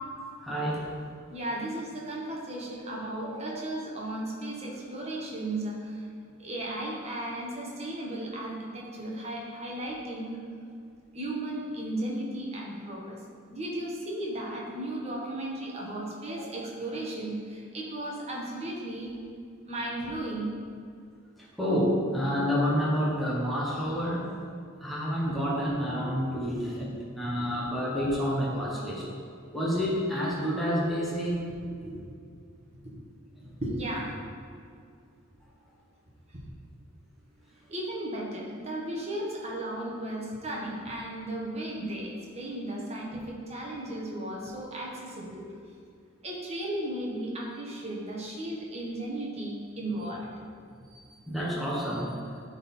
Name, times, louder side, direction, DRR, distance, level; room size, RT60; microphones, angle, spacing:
voice 1, 0.1-0.9 21.6-24.3 24.8-29.0 29.5-31.4 50.9-52.2, equal, ahead, -7 dB, 1.3 m, -29 dB
voice 2, 1.3-5.8 6.4-10.4 11.1-13.1 13.5-19.1 19.7-20.5 25.9-26.4 27.4-27.5 31.9-32.0 33.6-34.1 37.7-45.5 46.2-50.3, right 1 dB, 30° right, -3 dB, 1.4 m, -35 dB
12.0 x 4.0 x 4.4 m, 2.3 s
head